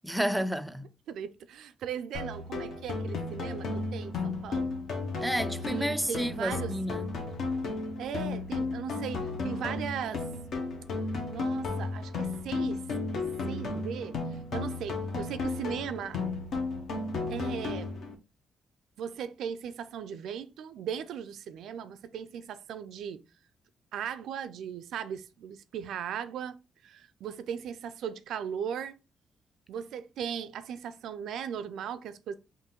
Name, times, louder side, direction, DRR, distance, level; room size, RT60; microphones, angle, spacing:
voice 1, 0.0-0.9 5.2-7.1, equal, 5° right, 0.3 m, -31 dB
voice 2, 1.1-4.7 5.7-6.7 8.0-10.2 11.3-12.8 13.1-14.2 14.5-16.2 17.3-17.9 19.0-23.2 23.9-29.0 29.7-32.4, right 8 dB, 80° right, 0.4 m, -38 dB
sound 1, 2.1-18.1, left 3 dB, 65° left, 1.1 m, -34 dB
3.7 x 2.6 x 4.3 m
cardioid pair, 130°, 0 cm